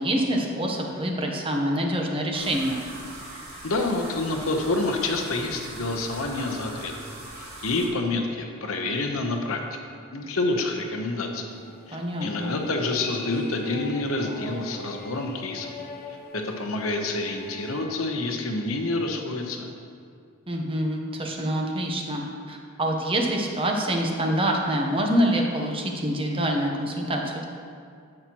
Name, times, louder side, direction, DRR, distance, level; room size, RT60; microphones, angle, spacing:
voice 1, 0.0-2.9 11.9-12.6 20.5-27.4, right 1 dB, 25° right, 1 dB, 0.9 m, -26 dB
sound 1, 2.3-7.9, right 1 dB, 80° right, 1.8 m, -41 dB
voice 2, 3.6-6.9 7.4-9.6 10.1-11.4 11.9-15.7 16.3-19.7, left 2 dB, 70° left, 2 dB, 0.9 m, -28 dB
sound 2, 11.5-17.9, left 2 dB, 45° left, 0.8 m, -41 dB
10.5 x 7.5 x 3.0 m, 2.3 s
head